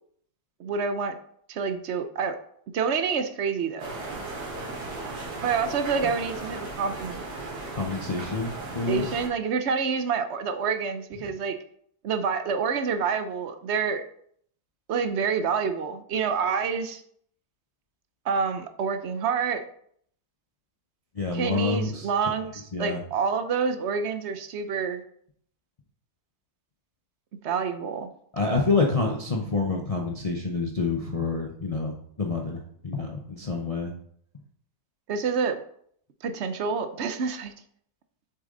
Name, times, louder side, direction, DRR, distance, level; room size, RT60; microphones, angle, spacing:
voice 1, 0.6-1.2 1.5-2.4 2.7-4.0 5.4-7.2 8.9-11.6 12.0-14.0 14.9-17.0 18.2-19.6 21.3-25.0 27.3-28.1 35.1-35.6 36.2-37.5, right 6 dB, 55° right, 9 dB, 0.8 m, -27 dB
sound 1, 3.8-9.3, right 2 dB, 85° right, 2.3 m, -36 dB
voice 2, 7.7-9.1 21.2-22.1 22.7-23.0 28.3-33.9, left 3 dB, 35° left, 0 dB, 0.6 m, -28 dB
7.3 x 6.9 x 3.9 m, 0.65 s
omnidirectional pair, 1.7 m